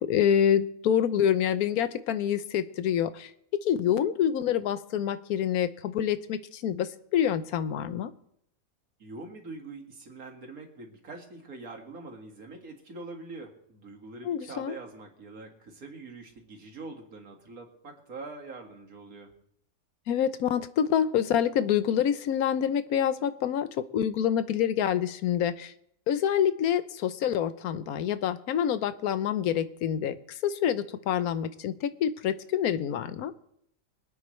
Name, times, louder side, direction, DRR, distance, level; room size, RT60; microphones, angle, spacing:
voice 1, 0.1-3.3 3.6-8.1 14.2-14.7 20.1-23.7 23.9-25.7 26.1-30.1 30.4-33.3, left 9 dB, 85° left, 13 dB, 1.2 m, -27 dB
voice 2, 9.0-19.3, right 3 dB, 80° right, 1 dB, 2.3 m, -44 dB
25.0 x 8.7 x 3.2 m, 0.71 s
omnidirectional pair, 1.5 m